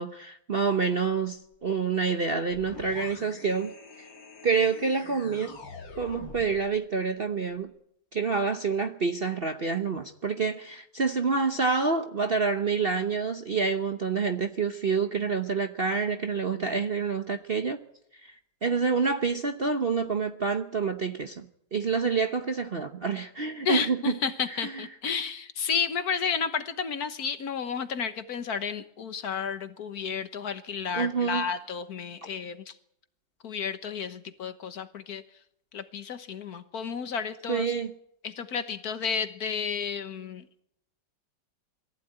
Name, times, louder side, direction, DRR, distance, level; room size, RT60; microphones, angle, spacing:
voice 1, 0.0-3.7 4.0-4.1 4.4-5.6 6.0-7.7 8.1-17.8 18.2-18.3 18.6-24.2 24.5-24.9 30.9-31.5 37.5-37.9, right 5 dB, 40° right, 6 dB, 0.9 m, -27 dB
sound 1, 2.5-6.7, left 4 dB, 75° left, 2.7 m, -45 dB
voice 2, 23.6-32.7 33.4-35.2 35.7-37.7 38.2-40.5, left 6 dB, 55° left, 10 dB, 1.5 m, -32 dB
22.5 x 14.5 x 8.9 m, 0.76 s
omnidirectional pair, 2.0 m